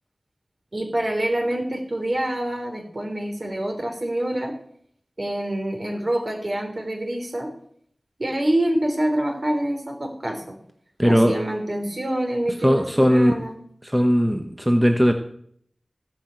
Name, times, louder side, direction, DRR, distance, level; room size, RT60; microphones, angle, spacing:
voice 1, 0.7-4.5 5.2-7.5 8.2-10.5 11.0-13.5, right 1 dB, 50° right, 2 dB, 3.4 m, -26 dB
voice 2, 11.0-11.3 12.6-13.3 13.8-15.1, equal, 10° right, 5 dB, 1.1 m, -18 dB
16.5 x 5.9 x 8.9 m, 0.67 s
wide cardioid pair, 45°, 0 cm